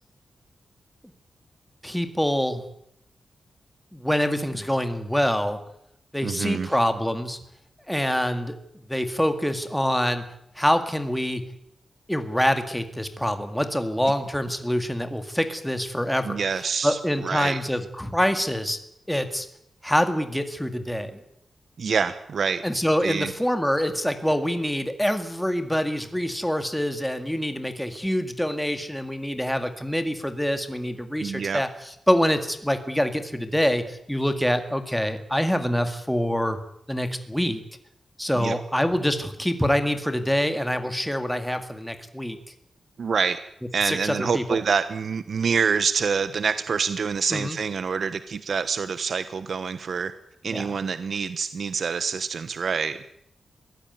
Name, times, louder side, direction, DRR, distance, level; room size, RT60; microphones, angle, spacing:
voice 1, 1.8-2.6 3.9-5.6 6.1-7.4 7.9-8.6 8.9-10.2 10.6-11.4 12.1-16.4 16.8-18.8 19.1-19.5 19.8-21.2 22.6-36.6 36.9-37.6 38.2-42.4 43.8-44.6 47.3-47.6 50.5-50.7, equal, 5° left, 8 dB, 2.0 m, -25 dB
voice 2, 6.2-6.7 16.2-17.6 21.8-22.6 23.0-23.3 31.2-31.6 38.4-38.5 43.0-43.4 43.7-50.1 50.4-53.0, right 5 dB, 55° right, 12 dB, 1.1 m, -26 dB
22.5 x 16.5 x 9.3 m, 0.75 s
wide cardioid pair, 150°, 0 cm